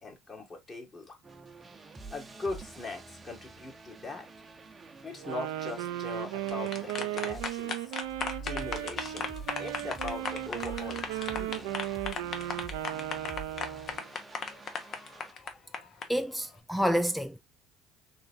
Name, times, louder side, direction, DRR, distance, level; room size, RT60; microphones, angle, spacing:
voice 1, 0.0-1.2 2.1-4.3 5.0-7.8 8.4-11.7, left 3 dB, 30° left, 2.0 m, -41 dB
sound 1, 1.2-7.7 8.0-15.3, right 3 dB, 25° right, 0.7 m, -47 dB
Wind instrument woodwind instrument, 5.1-14.1, right 14 dB, 80° right, 0.5 m, -36 dB
sound 2, 6.3-16.1, left 5 dB, 50° left, 1.0 m, -36 dB
voice 2, 16.1-17.4, equal, ahead, 0.3 m, -28 dB
3.8 x 3.5 x 2.6 m
hypercardioid pair, 75°, 0 cm